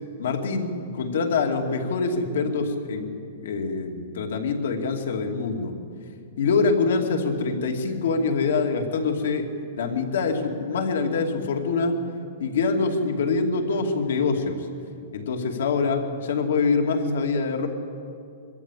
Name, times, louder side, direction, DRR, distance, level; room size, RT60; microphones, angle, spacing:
voice 1, 0.2-5.7 6.4-12.0 12.4-14.7 15.1-17.7, left 4 dB, 75° left, 3 dB, 2.5 m, -25 dB
23.0 x 14.0 x 8.4 m, 2.4 s
supercardioid pair, 170°, 0 cm